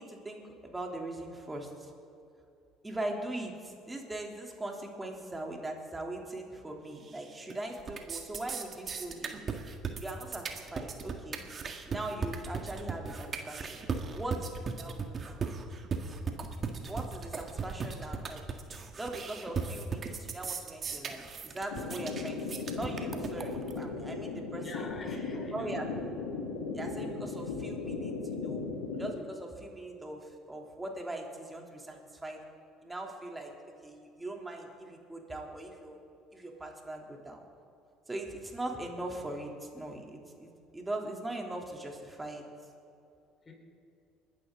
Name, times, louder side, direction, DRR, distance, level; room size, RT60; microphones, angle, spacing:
voice 1, 0.0-1.9 2.8-9.4 10.0-11.4 11.9-13.8 14.1-15.4 16.9-18.4 19.0-24.8 25.5-26.2 26.7-28.6 29.0-32.4 32.8-33.5 33.8-36.0 36.3-37.4 38.1-42.5, right 1 dB, 15° right, 1 dB, 3.1 m, -40 dB
sound 1, 7.1-7.5 7.8-23.8, right 5 dB, 40° right, 1.7 m, -37 dB
sound 2, 21.7-29.1, left 4 dB, 80° left, 1.9 m, -37 dB
voice 2, 24.6-25.8 43.5-43.6, left 2 dB, 30° left, -1 dB, 5.2 m, -45 dB
30.0 x 12.0 x 3.8 m, 2.6 s
hypercardioid pair, 60°, 0 cm